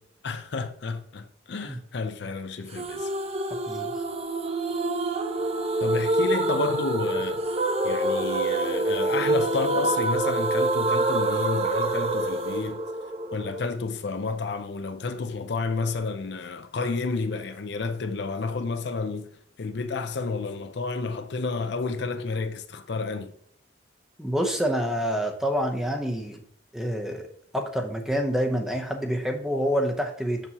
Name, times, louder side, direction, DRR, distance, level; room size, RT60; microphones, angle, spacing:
voice 1, 0.2-3.1 5.8-7.4 7.8-12.8 13.3-23.3, left 4 dB, 60° left, 0.5 m, -31 dB
sound 1, 2.8-13.7, right 2 dB, 30° right, 0.6 m, -26 dB
voice 2, 24.2-26.4 26.7-27.3 27.5-30.4, equal, 5° right, 0.8 m, -27 dB
7.1 x 6.8 x 2.9 m
head